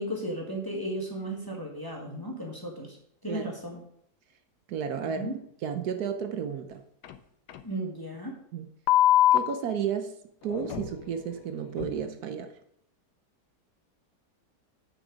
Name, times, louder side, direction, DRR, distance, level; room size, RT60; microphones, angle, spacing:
voice 1, 0.0-3.0 3.2-3.8 5.2-5.4 7.6-8.4, equal, 15° left, 0 dB, 1.3 m, -35 dB
voice 2, 4.7-5.3 5.6-6.8 8.5-8.7 9.3-10.2 10.4-12.5, right 7 dB, 70° right, 7 dB, 1.2 m, -32 dB
sound 1, 7.0-7.1 7.5-7.6 8.9-9.4 10.5-11.0 11.8-11.9, left 13 dB, 80° left, 1.2 m, -22 dB
8.0 x 6.2 x 5.1 m, 0.71 s
omnidirectional pair, 1.7 m